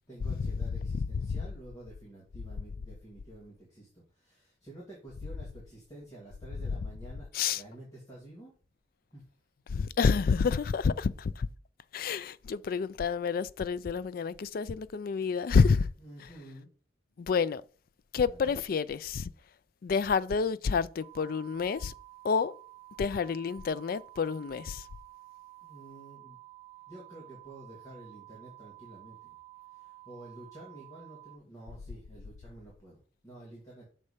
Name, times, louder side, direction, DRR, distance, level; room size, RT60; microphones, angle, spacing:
voice 1, 0.0-8.5 9.1-9.2 11.1-11.2 16.0-16.7 18.2-18.5 25.6-26.4 26.9-29.4 29.7-33.0 33.2-33.9, right 1 dB, 20° left, 2.1 m, -50 dB
voice 2, 9.7-11.5 11.9-15.9 17.2-17.6 18.1-19.3 19.8-21.9 22.2-22.5 23.0-24.8, left 5 dB, 55° left, 0.3 m, -28 dB
sound 1, 21.0-31.4, right 19 dB, 40° right, 2.5 m, -52 dB
6.5 x 4.2 x 4.9 m
head